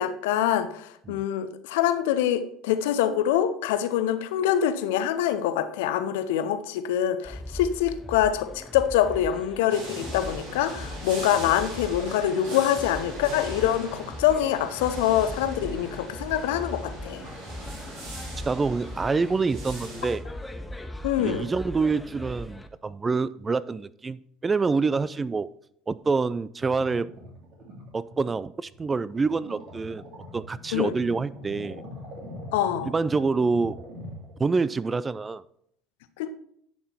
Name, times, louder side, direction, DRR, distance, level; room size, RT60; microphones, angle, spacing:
voice 1, 0.0-17.2 21.0-21.5 30.7-30.9 32.5-32.9 36.2-36.3, left 10 dB, 70° left, 0.7 m, -25 dB
sound 1, 7.2-22.7, left 1 dB, 10° left, 0.8 m, -40 dB
sound 2, 9.7-20.2, right 1 dB, 70° right, 4.1 m, -40 dB
voice 2, 18.5-20.2 21.2-25.5 25.9-27.1 27.9-30.0 30.3-31.8 32.9-33.8 34.4-35.4, right 4 dB, 25° right, 0.4 m, -26 dB
sound 3, 26.6-34.5, equal, 50° right, 2.4 m, -43 dB
10.5 x 5.6 x 4.3 m
hypercardioid pair, 70°, 0 cm